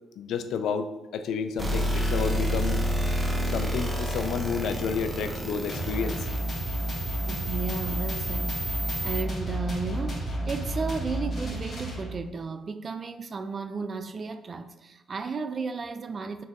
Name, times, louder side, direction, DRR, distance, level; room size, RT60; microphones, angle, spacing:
voice 1, 0.2-3.2 3.5-6.3, left 6 dB, 80° left, 0.3 m, -31 dB
sound 1, 1.6-9.2, equal, 10° right, 0.7 m, -30 dB
sound 2, 5.7-12.4, right 1 dB, 45° left, 1.4 m, -32 dB
voice 2, 7.3-16.4, right 4 dB, 40° right, 0.3 m, -34 dB
4.3 x 4.1 x 2.3 m
cardioid pair, 90°, 0 cm